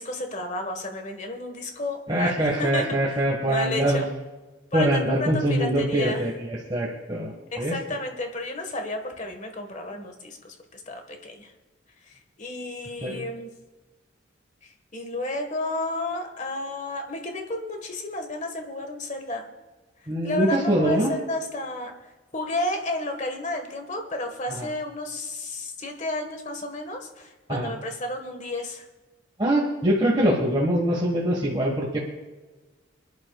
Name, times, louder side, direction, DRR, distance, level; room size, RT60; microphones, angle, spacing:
voice 1, 0.0-3.0 3.5-4.1 4.7-6.2 7.5-11.5 12.1-13.5 14.6-19.5 20.2-28.9, left 2 dB, 35° left, 5 dB, 1.5 m, -32 dB
voice 2, 2.1-4.1 4.7-7.8 13.0-13.2 20.1-21.1 24.5-24.7 27.5-27.7 29.4-32.0, right 1 dB, 25° right, -3 dB, 1.6 m, -23 dB
26.5 x 11.0 x 2.4 m, 1.2 s
head